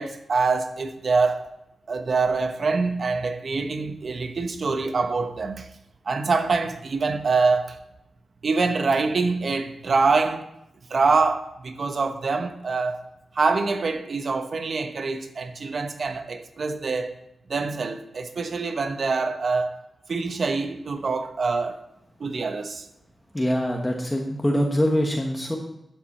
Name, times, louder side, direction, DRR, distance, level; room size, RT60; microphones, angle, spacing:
voice 1, 0.0-1.5 1.9-5.7 6.1-7.8 8.4-10.5 10.9-13.0 13.3-17.2 17.5-19.8 20.1-21.8 22.2-22.9, right 4 dB, 55° right, 0.9 m, -25 dB
voice 2, 23.3-25.6, equal, 10° left, 1.1 m, -24 dB
11.5 x 7.7 x 4.2 m
wide cardioid pair, 120°, 0 cm